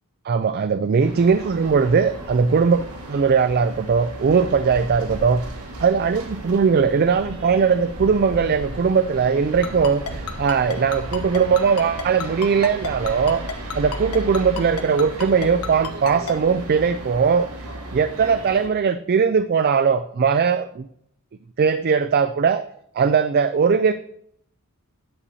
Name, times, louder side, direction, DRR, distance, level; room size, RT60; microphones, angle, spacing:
voice 1, 0.3-5.4 5.8-13.4 13.8-17.5 17.9-20.9 21.6-22.6 23.0-23.9, right 6 dB, 45° right, 12 dB, 0.4 m, -19 dB
sound 1, 1.0-18.7, right 1 dB, 85° right, 1.9 m, -35 dB
Ringtone, 9.6-16.3, left 6 dB, 80° left, 1.2 m, -30 dB
10.0 x 4.2 x 6.9 m, 0.69 s
head